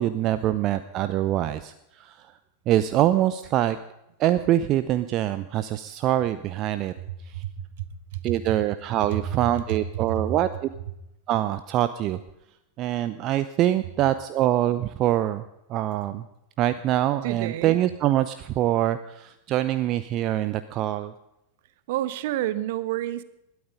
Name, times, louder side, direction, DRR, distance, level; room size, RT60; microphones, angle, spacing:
voice 1, 0.0-2.2 2.7-3.8 4.2-6.9 8.2-10.7 11.3-12.2 12.8-15.4 15.7-16.2 16.6-21.1, right 13 dB, 35° right, 12 dB, 0.7 m, -24 dB
voice 2, 7.1-7.6 8.1-8.3 9.3-9.4 9.7-10.3 17.2-17.8 21.9-23.2, right 12 dB, 50° right, 16 dB, 1.1 m, -30 dB
21.0 x 13.0 x 5.2 m, 0.86 s
figure-of-eight pair, 90°, 0 cm